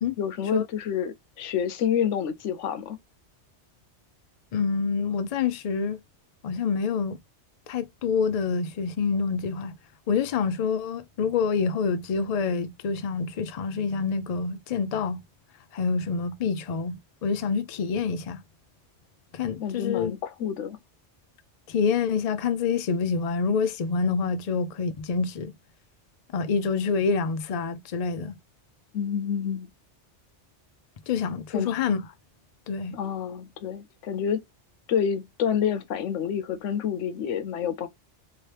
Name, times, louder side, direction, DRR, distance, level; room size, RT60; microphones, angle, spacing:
voice 1, 0.2-3.0 19.6-20.8 28.9-29.7 31.5-31.7 32.9-34.4 34.9-37.9, left 8 dB, 85° left, 0.9 m, -28 dB
voice 2, 4.5-6.0 6.4-7.2 7.7-9.8 10.1-15.2 15.7-17.0 17.2-18.4 19.3-20.1 21.7-25.5 26.3-28.4 31.1-32.0 32.7-33.0, left 5 dB, 60° left, 0.4 m, -27 dB
2.9 x 2.8 x 3.2 m
omnidirectional pair, 1.2 m